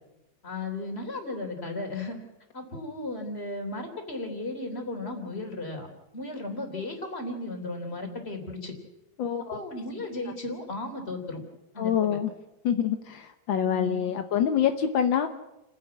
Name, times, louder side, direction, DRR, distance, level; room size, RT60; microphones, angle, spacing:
voice 1, 0.4-2.2 2.5-5.9 6.1-8.7 9.5-11.4 11.7-12.2 13.6-14.1, left 2 dB, 30° left, 4 dB, 3.5 m, -35 dB
voice 2, 9.2-9.6 11.8-12.3 12.6-15.3, left 9 dB, 80° left, 7 dB, 1.8 m, -26 dB
30.0 x 10.5 x 8.4 m, 0.96 s
omnidirectional pair, 2.1 m